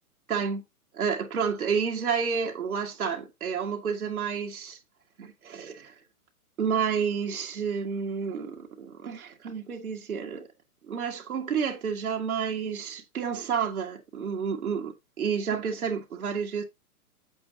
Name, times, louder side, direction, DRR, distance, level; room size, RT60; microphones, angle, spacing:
voice 1, 0.3-0.6 0.9-4.8 5.2-5.9 6.6-10.5 10.9-16.6, right 6 dB, 65° right, 1.8 m, -30 dB
8.8 x 7.7 x 2.7 m
figure-of-eight pair, 125°, 46 cm